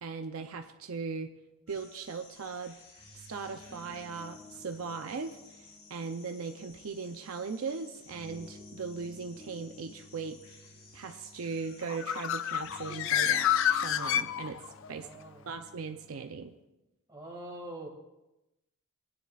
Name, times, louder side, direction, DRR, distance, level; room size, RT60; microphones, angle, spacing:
voice 1, 0.0-1.3 1.7-2.8 3.1-10.4 10.9-13.5 13.8-15.1 15.5-16.5, right 5 dB, 70° right, 5 dB, 0.6 m, -39 dB
sound 1, 1.7-14.1, left 3 dB, 85° left, 2.9 m, -55 dB
sound 2, 2.9-16.2, left 1 dB, 5° left, 1.0 m, -54 dB
Bird, 11.8-14.9, left 10 dB, 60° left, 0.4 m, -29 dB
voice 2, 14.8-15.5 17.1-17.9, right 1 dB, 20° right, 0 dB, 2.0 m, -44 dB
19.5 x 9.8 x 2.4 m, 0.94 s
head